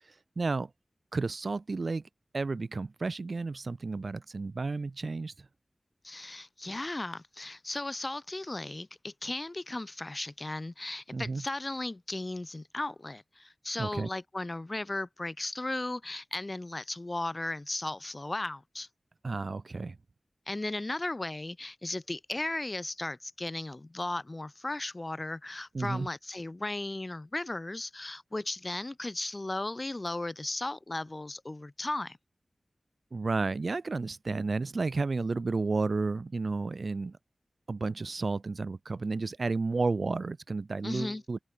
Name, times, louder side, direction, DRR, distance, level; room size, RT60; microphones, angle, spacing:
voice 1, 0.4-0.7 1.1-2.0 2.3-5.5 11.1-11.4 13.8-14.1 19.2-20.0 25.7-26.1 33.1-37.2 37.7-41.4, right 3 dB, 65° right, 0.4 m, -32 dB
voice 2, 6.0-18.9 20.5-32.2 40.8-41.2, left 2 dB, 35° left, 0.8 m, -36 dB
wide cardioid pair, 80°, 0 cm